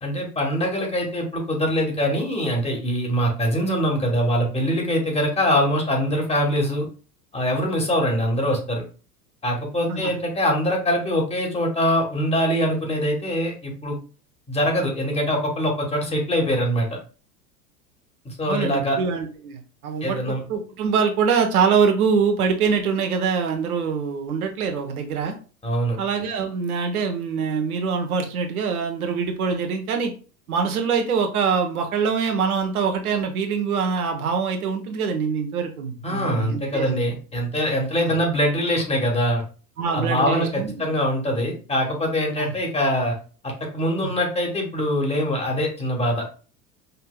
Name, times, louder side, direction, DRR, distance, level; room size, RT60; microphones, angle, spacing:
voice 1, 0.0-6.9 7.3-8.8 9.4-14.0 14.5-17.0 18.2-19.0 20.0-20.4 25.6-26.0 36.0-39.4 39.9-43.2 43.4-46.2, equal, 15° left, 1 dB, 1.2 m, -23 dB
voice 2, 18.5-25.4 26.0-30.1 30.5-37.0 38.1-38.2 39.8-40.9 42.4-42.5 44.0-44.1, right 6 dB, 65° right, 4 dB, 1.0 m, -24 dB
5.3 x 2.7 x 2.2 m, 0.36 s
figure-of-eight pair, 85°, 48 cm